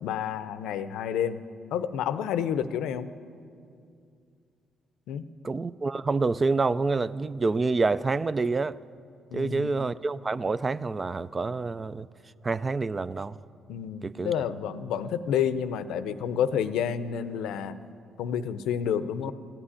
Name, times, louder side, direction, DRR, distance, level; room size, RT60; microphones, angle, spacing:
voice 1, 0.0-1.4 1.7-3.1 5.1-5.2 9.3-9.8 13.7-17.7 18.2-19.3, left 8 dB, 90° left, 0.6 m, -29 dB
voice 2, 5.4-8.8 9.3-12.1 12.4-13.4 14.0-14.3, right 3 dB, 30° right, 0.4 m, -27 dB
15.0 x 8.9 x 9.8 m
cardioid pair, 90°, 0 cm